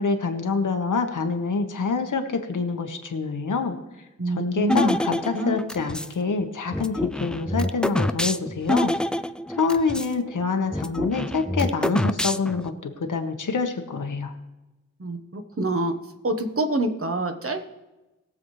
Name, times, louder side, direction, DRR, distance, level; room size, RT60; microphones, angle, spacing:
voice 1, 0.0-3.8 4.3-8.9 9.6-14.3, left 4 dB, 85° left, 5 dB, 1.3 m, -26 dB
voice 2, 4.2-5.6 15.0-15.9 16.2-17.7, right 1 dB, 50° right, 6 dB, 1.2 m, -26 dB
sound 1, 4.7-6.1 6.7-10.1 10.4-10.5 10.7-12.7, left 1 dB, 5° left, 0.4 m, -26 dB
20.5 x 7.3 x 3.2 m, 1.0 s
wide cardioid pair, 90°, 30 cm